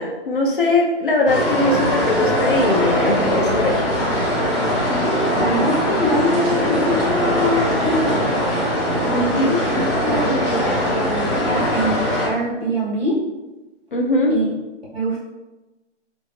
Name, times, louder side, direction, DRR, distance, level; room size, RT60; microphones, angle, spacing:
voice 1, 0.0-3.8 9.1-9.6 13.9-14.4, left 2 dB, 45° left, 1 dB, 0.5 m, -20 dB
sound 1, 1.3-12.3, equal, 25° left, 0.9 m, -21 dB
voice 2, 5.4-8.3 9.3-13.2 14.3-14.5 14.9-15.2, equal, 60° right, -5 dB, 1.4 m, -24 dB
3.0 x 2.5 x 3.1 m, 1.1 s
hypercardioid pair, 175°, 36 cm